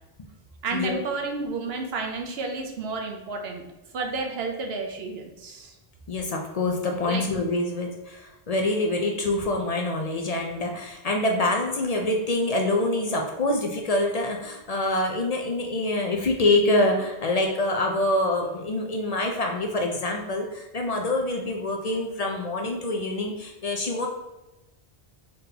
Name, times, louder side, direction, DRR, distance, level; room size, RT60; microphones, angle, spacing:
voice 1, 0.6-3.6 3.9-5.8 7.0-7.2, right 3 dB, 75° right, 2 dB, 1.0 m, -31 dB
voice 2, 6.1-24.1, left 2 dB, 50° left, 1 dB, 0.5 m, -25 dB
3.9 x 3.7 x 2.8 m, 0.99 s
omnidirectional pair, 1.0 m